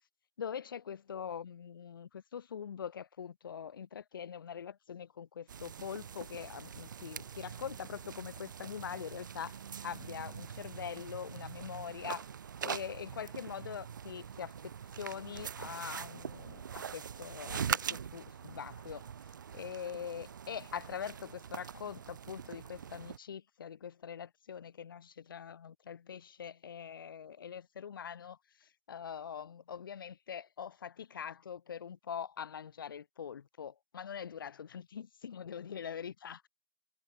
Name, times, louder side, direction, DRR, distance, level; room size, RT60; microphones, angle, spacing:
voice 1, 0.4-12.3 12.6-19.1 19.5-36.4, left 8 dB, 50° left, 0.6 m, -43 dB
sound 1, 5.5-23.2, right 8 dB, 45° right, 0.4 m, -43 dB
hypercardioid pair, 170°, 14 cm